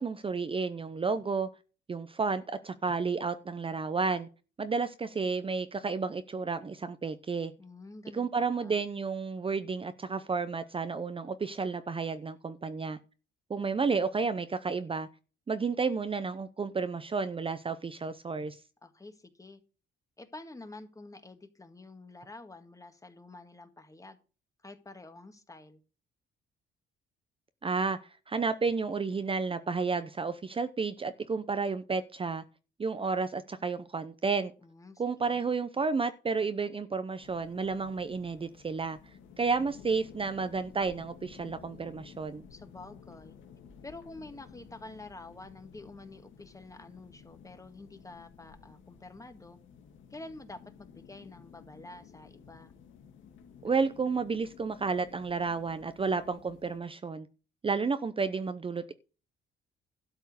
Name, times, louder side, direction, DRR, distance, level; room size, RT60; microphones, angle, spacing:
voice 1, 0.0-1.5 1.9-4.3 4.6-7.5 8.1-13.0 13.5-15.1 15.5-18.6 27.6-32.4 32.8-34.5 35.0-39.0 39.4-42.4 53.6-57.3 57.6-58.9, right 4 dB, 25° right, 0.7 m, -31 dB
voice 2, 7.6-8.8 18.8-19.6 20.2-24.2 24.6-25.8 34.6-35.4 42.5-43.4 43.8-49.6 50.1-52.7, left 2 dB, 15° left, 1.7 m, -48 dB
sound 1, 37.2-56.8, left 7 dB, 80° left, 1.8 m, -54 dB
12.5 x 4.5 x 8.4 m
cardioid pair, 90°, 20 cm